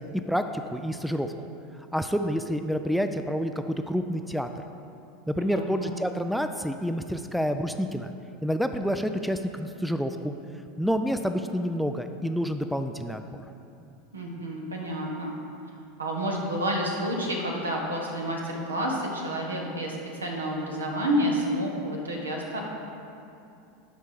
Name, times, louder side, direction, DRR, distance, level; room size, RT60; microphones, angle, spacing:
voice 1, 0.0-1.3 1.9-4.6 5.3-8.1 8.4-10.3 10.8-13.4, equal, ahead, 8 dB, 0.4 m, -28 dB
voice 2, 5.4-5.9 14.1-15.4 16.0-22.6, equal, 80° right, 0 dB, 1.2 m, -29 dB
11.0 x 4.5 x 4.7 m, 2.6 s
figure-of-eight pair, 80°, 0 cm